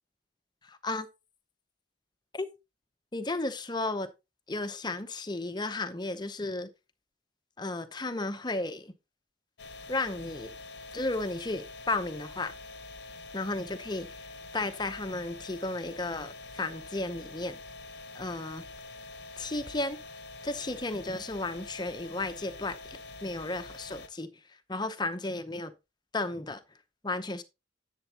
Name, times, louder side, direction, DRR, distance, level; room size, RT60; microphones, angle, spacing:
voice 1, 0.7-1.1 2.3-2.5 3.1-4.1 4.5-6.7 7.6-8.9 9.9-10.5 10.9-12.5 13.3-14.2 14.5-17.6 18.1-18.7 19.4-20.0 20.4-24.3 24.7-25.7 26.1-26.6 27.0-27.4, left 2 dB, 20° left, 0.7 m, -34 dB
sound 1, 9.6-24.1, left 3 dB, 60° left, 0.8 m, -46 dB
10.5 x 8.2 x 2.9 m
head